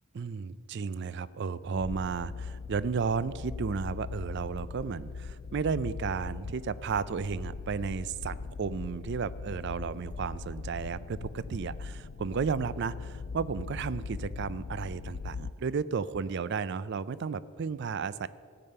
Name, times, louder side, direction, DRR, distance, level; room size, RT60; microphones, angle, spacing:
voice 1, 0.1-18.3, right 5 dB, 50° right, 17 dB, 0.4 m, -33 dB
sound 1, 1.7-15.5, left 4 dB, 50° left, 0.3 m, -40 dB
14.5 x 8.7 x 5.5 m, 2.1 s
head